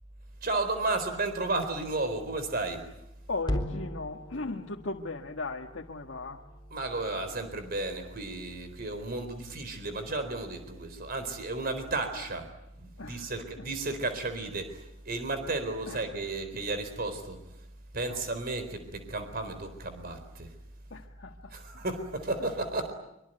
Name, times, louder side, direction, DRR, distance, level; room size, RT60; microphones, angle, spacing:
voice 1, 0.4-2.9 6.7-12.5 12.8-17.4 17.9-20.5 21.5-22.9, right 2 dB, 50° right, 9 dB, 4.2 m, -33 dB
voice 2, 3.3-6.4 12.2-12.3 13.0-13.7 15.9-16.1 16.5-16.7 18.0-18.3 20.9-21.8 22.4-22.5, left 3 dB, 75° left, 1 dB, 1.7 m, -38 dB
sound 1, 3.4-7.8, left 1 dB, 25° left, 3.8 m, -39 dB
25.0 x 25.0 x 9.2 m, 0.86 s
head